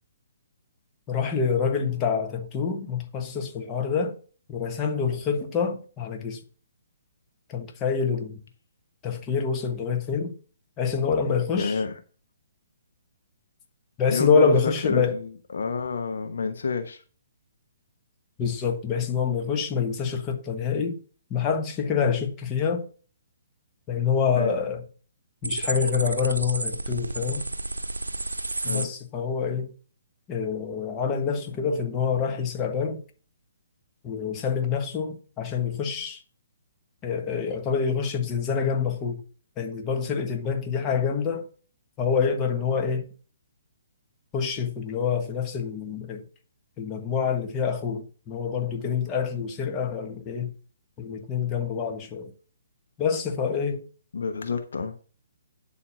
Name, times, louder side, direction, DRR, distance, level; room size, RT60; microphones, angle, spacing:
voice 1, 1.1-4.2 4.5-6.4 7.5-8.4 9.0-10.3 10.8-11.8 14.0-15.2 18.4-21.0 21.3-22.8 23.9-24.8 25.4-27.4 28.6-29.7 30.3-33.0 34.0-36.2 37.0-39.2 39.6-41.5 42.0-43.0 44.3-46.2 46.8-50.5 51.0-52.3 53.0-53.8, left 6 dB, 20° left, 1.3 m, -26 dB
voice 2, 11.5-11.9 14.1-17.0 24.3-24.6 28.6-28.9 54.1-54.9, left 4 dB, 60° left, 1.0 m, -29 dB
sound 1, 25.4-28.9, right 2 dB, 75° right, 0.7 m, -31 dB
11.0 x 4.2 x 5.8 m
figure-of-eight pair, 130°, 0 cm